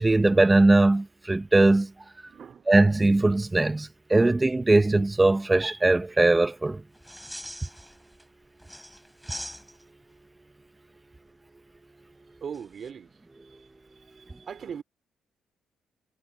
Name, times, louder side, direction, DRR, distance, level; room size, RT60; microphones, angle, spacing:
voice 1, 0.0-1.9 2.7-6.8, right 2 dB, 15° right, 1.2 m, -20 dB
voice 2, 2.3-2.6 12.4-13.1 14.5-14.8, right 7 dB, 55° right, 2.7 m, -38 dB
sound 1, 6.9-8.2 8.6-10.0 12.5-12.9, equal, ahead, 3.9 m, -42 dB
cardioid pair, 90°, 0 cm